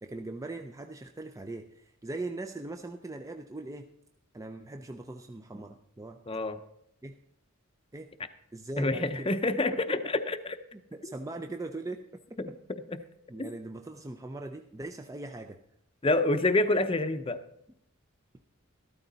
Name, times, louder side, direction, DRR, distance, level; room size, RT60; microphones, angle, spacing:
voice 1, 0.0-3.9 4.3-6.2 7.0-7.1 7.9-8.1 8.5-10.0 10.7-12.6 13.3-15.6, right 2 dB, 15° right, 5 dB, 0.5 m, -40 dB
voice 2, 6.3-6.6 8.8-10.6 12.4-12.5 12.9-13.0 13.4-13.5 16.0-17.4, left 2 dB, 25° left, 9 dB, 0.7 m, -27 dB
13.0 x 13.0 x 4.0 m, 0.75 s
head